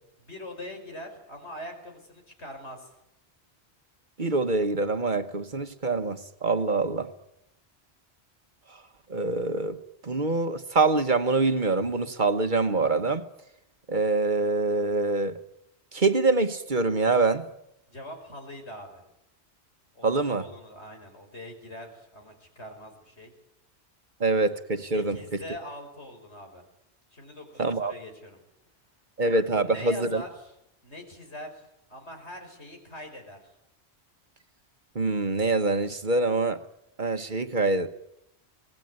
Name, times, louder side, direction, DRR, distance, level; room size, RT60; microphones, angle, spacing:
voice 1, 0.2-2.9 17.9-19.0 19.9-23.3 24.9-26.6 27.1-28.4 29.4-30.6 30.8-31.6 31.9-33.4, left 1 dB, 80° left, 4 dB, 5.5 m, -42 dB
voice 2, 4.2-7.1 9.1-9.8 10.1-13.2 13.9-15.3 15.9-17.4 20.0-20.4 24.2-25.1 27.6-27.9 29.2-30.2 34.9-36.6 37.0-37.9, right 3 dB, 45° right, 8 dB, 1.4 m, -25 dB
25.0 x 19.0 x 9.5 m, 0.80 s
omnidirectional pair, 1.1 m